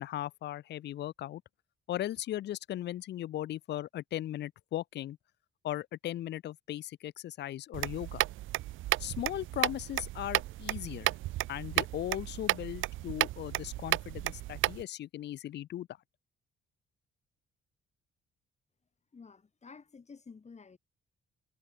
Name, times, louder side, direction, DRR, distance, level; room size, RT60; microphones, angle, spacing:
voice 1, 0.0-1.4 1.9-5.2 5.6-8.2 9.0-11.1 11.5-15.9, left 13 dB, 60° left, 0.5 m, -37 dB
sound 1, 7.7-14.8, right 16 dB, 80° right, 0.5 m, -33 dB
voice 2, 19.1-20.8, left 5 dB, 35° left, 6.5 m, -51 dB
cardioid pair, 90°, 20 cm